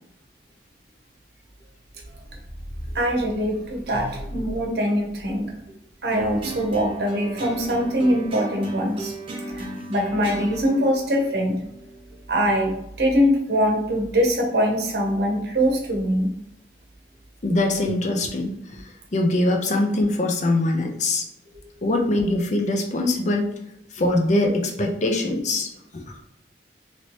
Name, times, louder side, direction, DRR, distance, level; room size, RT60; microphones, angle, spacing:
voice 1, 2.9-5.5 6.0-9.1 9.5-11.6 12.3-16.3, equal, 65° right, 1 dB, 0.8 m, -23 dB
sound 1, 6.1-12.6, right 2 dB, 30° right, 0.8 m, -35 dB
voice 2, 17.4-18.5 19.1-21.2 21.8-23.5 24.0-25.7 25.9-26.0, left 2 dB, 40° left, 2 dB, 0.5 m, -22 dB
2.9 x 2.9 x 3.0 m, 0.81 s
head